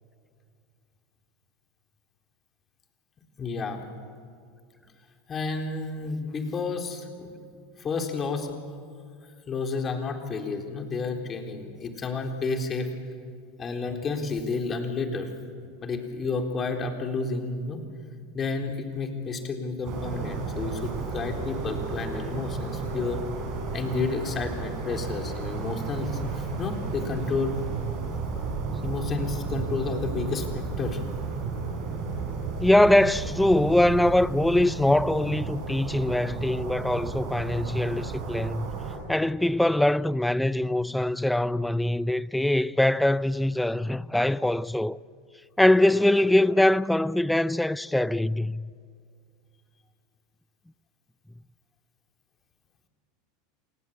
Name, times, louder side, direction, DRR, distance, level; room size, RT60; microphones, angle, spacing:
voice 1, 3.4-3.8 5.3-7.4 7.8-8.5 9.5-12.9 13.6-15.3 15.8-17.8 18.3-23.2 23.7-27.6 28.8-31.0, left 4 dB, 30° left, 3.9 m, -31 dB
sound 1, 19.8-39.0, right 4 dB, 50° right, 6.1 m, -33 dB
voice 2, 32.6-38.7 39.1-45.0 45.6-48.7, left 1 dB, 5° left, 0.6 m, -23 dB
28.0 x 19.0 x 8.3 m
hypercardioid pair, 85°, 0 cm